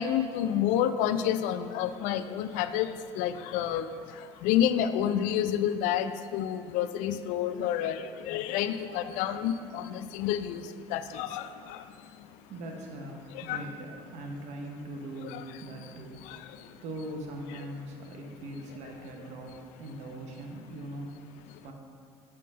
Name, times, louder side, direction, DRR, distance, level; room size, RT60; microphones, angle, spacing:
voice 1, 0.0-11.9 13.3-13.6 15.3-15.4 16.3-16.7, left 10 dB, 70° left, 11 dB, 0.4 m, -29 dB
voice 2, 12.5-16.2 16.8-21.1 21.6-21.7, right 1 dB, 65° right, 1 dB, 1.0 m, -41 dB
7.5 x 3.7 x 5.5 m, 2.3 s
hypercardioid pair, 70°, 13 cm